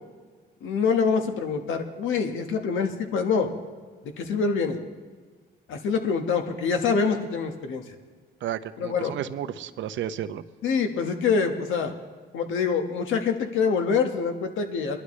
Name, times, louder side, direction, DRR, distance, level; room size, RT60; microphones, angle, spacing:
voice 1, 0.6-3.5 4.2-4.8 5.7-7.8 8.8-9.1 10.6-11.9 12.3-15.0, left 5 dB, 80° left, 5 dB, 1.4 m, -25 dB
voice 2, 8.4-10.4, right 10 dB, 70° right, 12 dB, 0.7 m, -32 dB
22.5 x 11.5 x 3.2 m, 1.5 s
cardioid pair, 90°, 20 cm